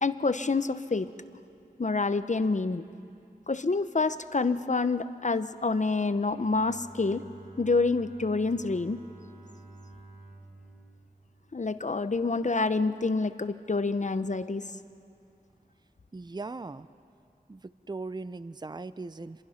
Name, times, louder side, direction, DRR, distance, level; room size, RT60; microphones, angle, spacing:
voice 1, 0.0-1.1 1.8-2.8 3.5-7.2 7.6-9.0 11.5-14.7, left 3 dB, 50° left, 12 dB, 0.8 m, -27 dB
Bowed string instrument, 6.2-12.2, right 2 dB, 45° right, 3.9 m, -51 dB
voice 2, 16.1-16.9 17.5-19.4, right 3 dB, 25° right, 15 dB, 0.5 m, -39 dB
26.5 x 22.5 x 5.8 m, 2.5 s
wide cardioid pair, 60°, 16 cm